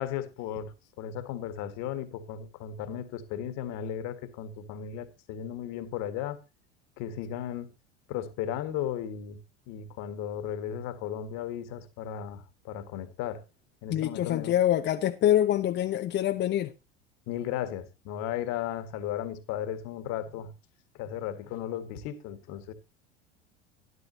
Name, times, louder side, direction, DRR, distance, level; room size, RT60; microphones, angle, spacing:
voice 1, 0.0-6.4 7.0-7.7 8.1-9.4 9.7-13.4 13.8-14.5 17.3-20.5 20.9-22.7, left 10 dB, 50° left, 1.7 m, -35 dB
voice 2, 13.9-16.7, left 12 dB, 30° left, 0.7 m, -25 dB
12.5 x 11.5 x 2.8 m
figure-of-eight pair, 75°, 35 cm